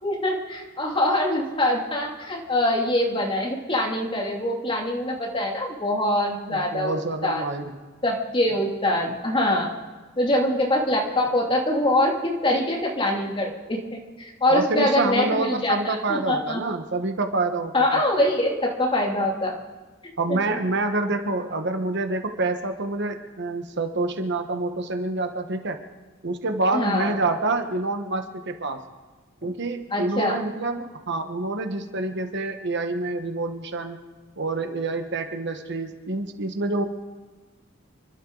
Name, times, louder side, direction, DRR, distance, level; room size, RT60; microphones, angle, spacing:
voice 1, 0.0-6.9 7.2-7.4 8.0-9.7 10.2-16.6 17.7-19.5 20.3-20.6 26.7-27.1 29.4-29.5 29.9-30.4, left 1 dB, 25° left, -1 dB, 2.7 m, -24 dB
voice 2, 6.5-7.7 14.5-17.9 20.2-25.8 26.2-28.8 29.4-34.0 34.4-36.9, right 2 dB, 60° right, 6 dB, 1.3 m, -27 dB
29.5 x 12.5 x 4.0 m, 1.3 s
head